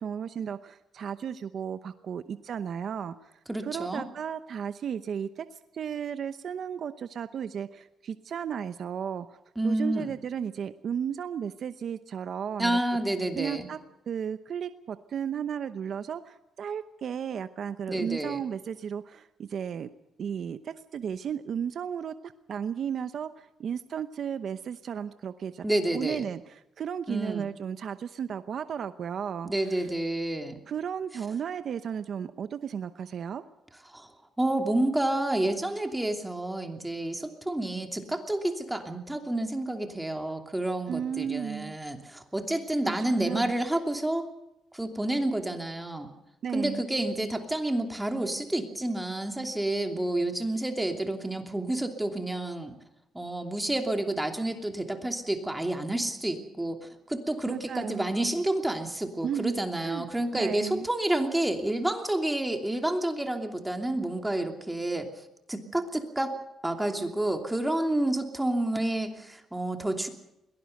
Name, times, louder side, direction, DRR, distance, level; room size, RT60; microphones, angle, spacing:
voice 1, 0.0-3.3 3.6-5.5 5.7-9.4 9.6-12.8 13.4-13.8 14.1-19.9 20.2-25.6 25.9-29.9 30.7-33.4 40.9-41.8 42.8-43.5 46.4-46.8 57.5-58.1 59.2-60.1 60.3-60.9, right 8 dB, 60° right, 11 dB, 0.9 m, -34 dB
voice 2, 3.5-4.0 9.6-10.1 12.6-13.7 17.9-18.4 25.6-26.2 27.1-27.5 29.4-30.6 33.9-34.1 34.4-44.2 44.7-46.1 46.5-52.8 53.1-65.1 65.5-66.4 66.6-70.1, right 1 dB, 10° right, 4 dB, 2.8 m, -29 dB
22.0 x 18.5 x 6.6 m, 0.89 s
cardioid pair, 90°, 0 cm